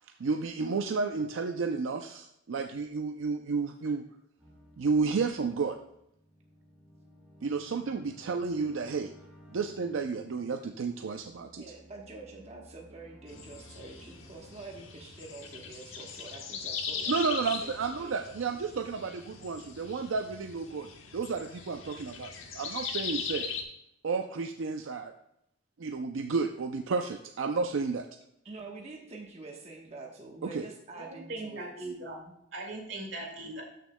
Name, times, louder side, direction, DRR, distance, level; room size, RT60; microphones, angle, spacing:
voice 1, 0.2-4.0 4.8-5.8 7.4-9.1 9.5-11.6 17.1-23.5 24.0-25.1 25.8-28.1 30.4-30.7, right 4 dB, 80° right, 5 dB, 0.5 m, -32 dB
sound 1, 4.4-16.1 16.5-17.6, left 1 dB, 5° right, 3.1 m, -57 dB
voice 2, 11.6-18.2 28.4-31.9, right 3 dB, 35° right, 0 dB, 1.1 m, -46 dB
sound 2, 13.3-23.6, left 6 dB, 85° left, 1.1 m, -40 dB
voice 3, 30.9-33.6, right 2 dB, 65° right, 0 dB, 2.0 m, -40 dB
12.5 x 6.6 x 2.2 m, 0.79 s
head